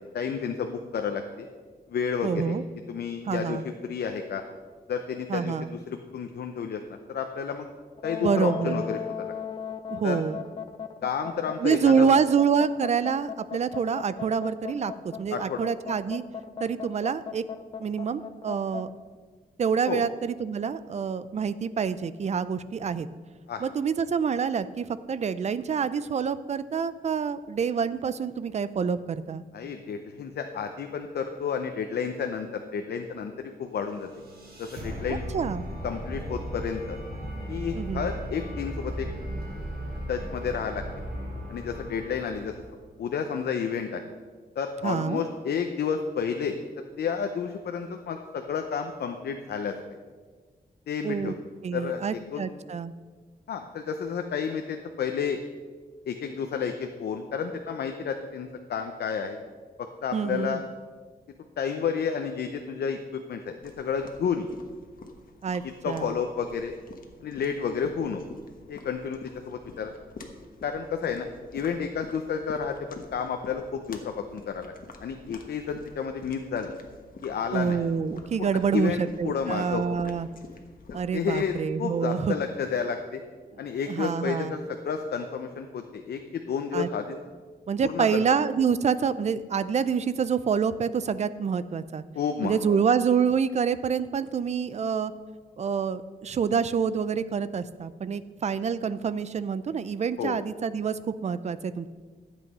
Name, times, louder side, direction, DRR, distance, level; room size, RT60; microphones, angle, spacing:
voice 1, 0.1-1.5 1.9-2.6 2.9-4.4 4.9-6.8 7.1-7.7 8.0-9.3 10.0-10.2 11.0-12.1 15.3-15.6 19.9-20.0 23.5-23.6 29.5-34.1 34.6-35.2 35.8-37.0 37.5-39.1 40.1-40.8 41.5-42.5 43.0-44.0 44.6-46.6 47.0-50.0 50.9-51.3 51.7-52.5 53.5-55.4 56.1-59.4 59.8-60.6 61.6-64.5 65.8-66.7 67.2-68.2 68.7-69.2 69.4-69.9 70.6-74.7 75.0-76.7 77.2-77.8 78.4-80.0 81.1-83.2 83.6-87.2 87.8-88.2 92.1-92.8 100.2-100.4, left 6 dB, 85° left, 5 dB, 0.7 m, -31 dB
voice 2, 2.2-2.6 3.3-3.7 5.3-5.7 8.2-8.8 9.9-10.4 11.6-16.2 16.6-17.4 17.8-18.9 19.6-23.1 23.6-29.4 35.3-35.6 37.7-38.1 44.8-45.2 51.0-51.3 51.6-52.9 60.1-60.6 65.4-66.1 77.5-80.3 80.9-82.4 83.9-84.6 86.7-86.9 87.7-92.0 92.4-95.1 95.6-101.9, right 6 dB, 45° right, 14 dB, 0.4 m, -27 dB
sound 1, 8.0-18.9, left 7 dB, 30° left, 0.6 m, -37 dB
sound 2, 33.7-42.9, equal, 85° right, 3.9 m, -36 dB
sound 3, 63.6-81.6, left 3 dB, 60° left, 1.3 m, -48 dB
12.5 x 8.3 x 5.4 m, 1.5 s
wide cardioid pair, 155°, 16 cm